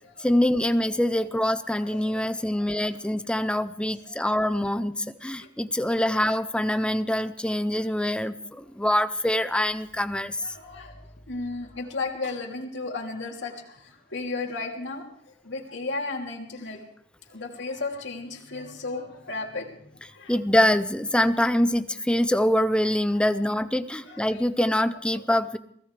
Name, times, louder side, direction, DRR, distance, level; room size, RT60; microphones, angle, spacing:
voice 1, 0.2-10.4 20.3-25.6, left 1 dB, 5° left, 11 dB, 0.6 m, -24 dB
voice 2, 1.8-2.4 3.4-3.5 5.4-5.5 8.0-8.2 10.4-11.0 11.3-15.1 15.4-16.8 17.3-20.3 24.1-24.7 25.1-25.2, left 3 dB, 70° left, -1 dB, 3.0 m, -35 dB
23.5 x 17.0 x 3.3 m, 0.67 s
head